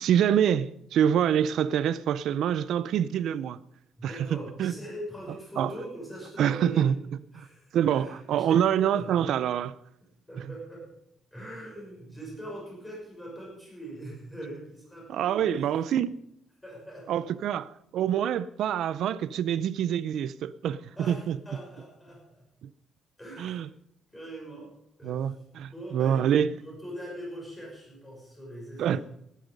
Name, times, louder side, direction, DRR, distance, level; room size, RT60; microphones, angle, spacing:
voice 1, 0.0-3.6 4.0-4.1 4.6-4.7 5.6-5.7 6.4-6.9 7.3-7.5 7.7-9.8 15.1-16.1 17.1-21.4 22.6-22.7 23.4-23.7 25.0-26.5 28.8-29.0, right 9 dB, 65° right, 0.6 m, -26 dB
voice 2, 4.0-6.9 7.3-9.1 10.3-10.9 11.3-15.4 16.6-17.3 21.0-22.4 23.2-23.6 24.1-24.7 25.0-25.3 25.6-29.0, right 1 dB, 10° left, 6.3 m, -42 dB
14.5 x 11.5 x 5.4 m
cardioid pair, 170°, 0 cm